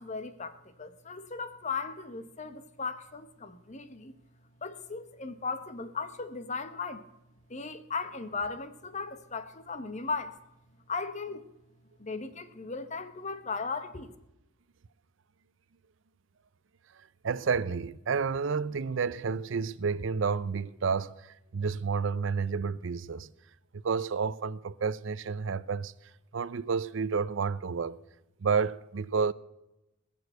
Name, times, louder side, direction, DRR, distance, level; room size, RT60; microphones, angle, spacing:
voice 1, 0.0-4.1 4.6-7.1 7.5-10.3 10.9-11.5 12.0-14.1, left 4 dB, 35° left, 1.0 m, -37 dB
voice 2, 17.2-23.3 23.7-25.9 26.3-28.0 28.4-29.3, right 5 dB, 65° right, 0.5 m, -30 dB
20.0 x 6.9 x 8.0 m
head